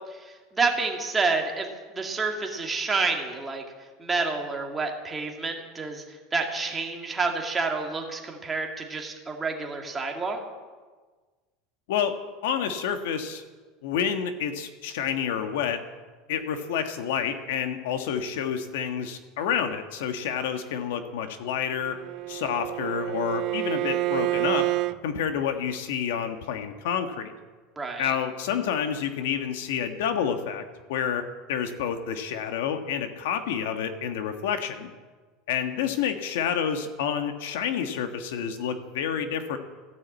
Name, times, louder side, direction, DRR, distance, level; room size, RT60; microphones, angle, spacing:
voice 1, 0.1-1.7 1.9-3.6 4.0-10.4 27.8-28.1, right 4 dB, 10° right, 2 dB, 1.9 m, -29 dB
voice 2, 12.4-13.4 13.8-15.8 16.3-22.0 22.3-24.7 25.0-27.3 28.0-30.6 30.9-34.9 35.5-39.6, left 8 dB, 85° left, 8 dB, 1.5 m, -29 dB
Bowed string instrument, 21.8-25.0, right 19 dB, 45° right, 0.4 m, -28 dB
15.0 x 10.5 x 8.3 m, 1.4 s
supercardioid pair, 165°, 0 cm